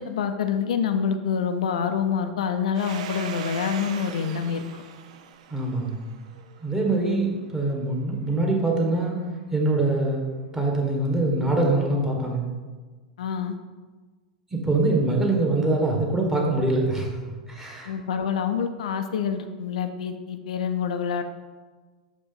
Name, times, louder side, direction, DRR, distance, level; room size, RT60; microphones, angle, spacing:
voice 1, 0.0-4.8 13.2-13.5 17.8-21.2, left 7 dB, 65° left, 7 dB, 0.5 m, -27 dB
Domestic sounds home sounds, 2.7-7.2, right 9 dB, 60° right, 0.5 m, -39 dB
voice 2, 5.5-6.0 6.6-9.1 9.5-12.5 14.5-17.2 17.5-17.9, right 2 dB, 10° right, -1 dB, 1.6 m, -24 dB
5.9 x 5.1 x 3.8 m, 1.4 s
figure-of-eight pair, 90°, 4 cm